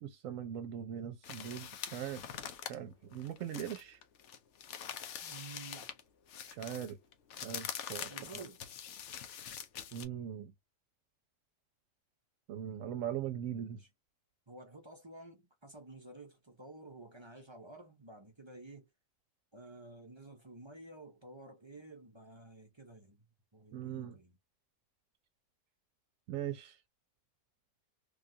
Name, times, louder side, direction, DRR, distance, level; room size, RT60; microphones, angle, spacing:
voice 1, 0.0-2.2 2.6-4.0 6.5-7.0 7.4-8.4 9.9-10.5 12.5-13.8 23.7-24.2 26.3-26.8, right 10 dB, 80° right, 1.0 m, -40 dB
sound 1, 1.2-6.0 6.3-10.0, left 8 dB, 65° left, 0.9 m, -44 dB
voice 2, 5.2-5.9 8.1-8.7 13.7-13.9 14.5-18.9 19.5-23.2 23.5-24.4, right 2 dB, 25° right, 0.7 m, -52 dB
3.4 x 2.4 x 2.6 m
omnidirectional pair, 1.4 m